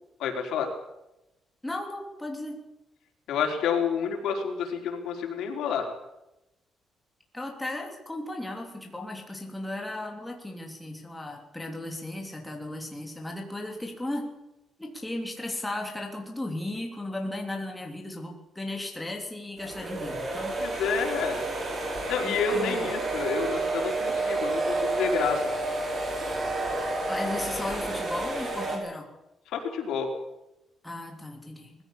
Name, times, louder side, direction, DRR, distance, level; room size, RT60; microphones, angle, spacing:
voice 1, 0.2-0.7 3.3-5.9 20.6-21.4 22.1-25.4 29.5-30.1, left 6 dB, 90° left, 3 dB, 4.6 m, -29 dB
voice 2, 1.6-2.6 7.3-14.3 14.8-20.6 22.2-22.9 27.1-29.1 30.8-31.8, left 1 dB, 5° left, 1 dB, 3.2 m, -35 dB
hair dryer, 19.6-28.8, right 2 dB, 30° right, 4.9 m, -30 dB
20.0 x 16.0 x 8.6 m, 0.91 s
cardioid pair, 180°, 0 cm